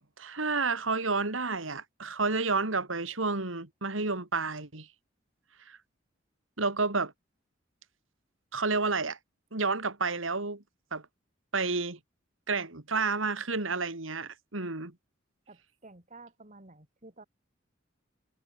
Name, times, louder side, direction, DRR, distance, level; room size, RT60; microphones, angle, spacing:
voice 1, 0.2-4.9 5.7-5.8 6.6-7.1 8.5-9.2 9.5-10.6 10.9-11.0 11.5-12.0 12.5-14.9, right 4 dB, 80° right, 2.9 m, -30 dB
voice 2, 15.5-17.3, right 3 dB, 40° right, 4.1 m, -52 dB
head